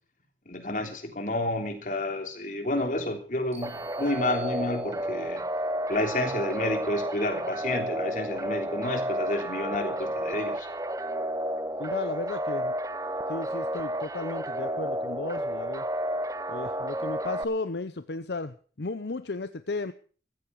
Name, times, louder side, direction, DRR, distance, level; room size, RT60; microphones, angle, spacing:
voice 1, 0.5-3.7 4.0-5.4 5.9-10.7, left 1 dB, 45° left, 5 dB, 3.3 m, -30 dB
sound 1, 3.5-5.4, right 3 dB, 35° right, 6.1 m, -53 dB
sound 2, 3.6-17.4, right 1 dB, 20° right, 0.7 m, -31 dB
voice 2, 11.8-12.7 13.3-15.8 16.5-19.9, left 3 dB, 70° left, 11 dB, 0.8 m, -34 dB
16.0 x 14.0 x 4.7 m, 0.42 s
head